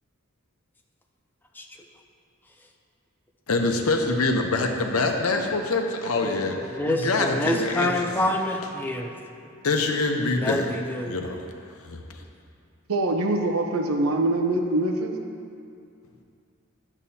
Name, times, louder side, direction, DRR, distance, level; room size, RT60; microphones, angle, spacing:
voice 1, 3.5-6.6 6.9-8.1 9.6-10.7 11.0-11.4 11.8-12.0, left 3 dB, 85° left, 3 dB, 0.8 m, -25 dB
voice 2, 6.2-9.1 10.4-11.2, left 1 dB, 10° left, 1 dB, 0.5 m, -27 dB
voice 3, 12.9-15.2, right 2 dB, 85° right, 3 dB, 0.8 m, -24 dB
11.0 x 7.2 x 2.8 m, 2.4 s
head